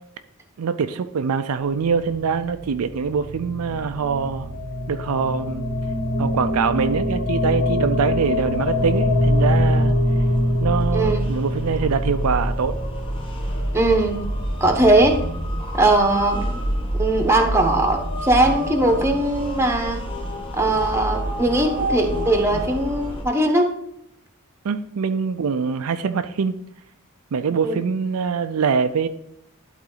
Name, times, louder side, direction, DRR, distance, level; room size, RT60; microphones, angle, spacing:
voice 1, 0.6-4.5 4.9-5.7 6.2-9.9 10.6-12.7 24.6-26.6 27.3-29.1, right 6 dB, 70° right, 9 dB, 0.4 m, -23 dB
sound 1, 1.7-13.8, left 1 dB, 80° left, 2.9 m, -24 dB
sound 2, 8.0-23.2, equal, 25° left, 1.2 m, -28 dB
voice 2, 10.9-11.3 13.7-14.2 14.6-15.2 15.7-16.4 16.9-20.0 20.5-23.7 27.6-27.8, right 2 dB, 10° right, 4 dB, 1.0 m, -19 dB
11.5 x 4.0 x 3.9 m, 0.79 s
head